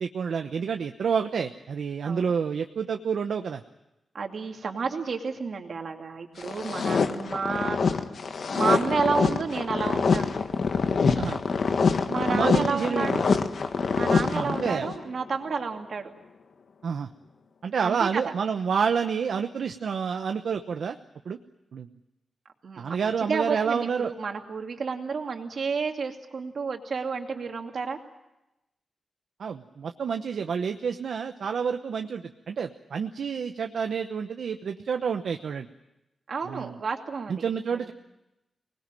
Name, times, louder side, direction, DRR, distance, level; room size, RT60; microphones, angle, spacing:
voice 1, 0.0-3.6 11.2-11.4 12.3-13.2 14.3-14.9 16.8-17.1 17.6-21.0 21.2-21.4 21.7-21.9 22.8-24.1 29.4-35.7 36.5-36.7 37.3-37.9, right 6 dB, 75° right, 6 dB, 1.0 m, -29 dB
voice 2, 4.1-7.8 8.5-10.3 12.1-13.2 13.9-16.1 17.8-18.3 22.6-28.0 36.3-37.4 37.7-37.9, right 5 dB, 60° right, 3 dB, 2.6 m, -31 dB
sound 1, 6.4-15.0, left 5 dB, 60° left, 1.5 m, -25 dB
25.0 x 20.0 x 9.1 m, 0.94 s
wide cardioid pair, 135°, 0 cm